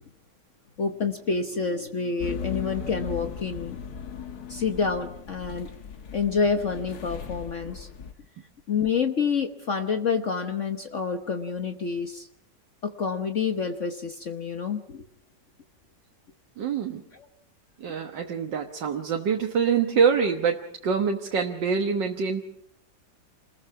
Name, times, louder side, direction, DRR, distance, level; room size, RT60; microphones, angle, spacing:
voice 1, 0.8-3.8 4.5-5.7 6.1-7.9 8.7-12.3 12.8-15.0, left 5 dB, 45° left, 6 dB, 1.3 m, -28 dB
sound 1, 2.2-8.1, left 6 dB, 65° left, 1.7 m, -37 dB
voice 2, 16.6-17.0 17.8-22.5, right 6 dB, 85° right, 2 dB, 2.0 m, -25 dB
28.5 x 21.0 x 4.8 m, 0.71 s
omnidirectional pair, 1.9 m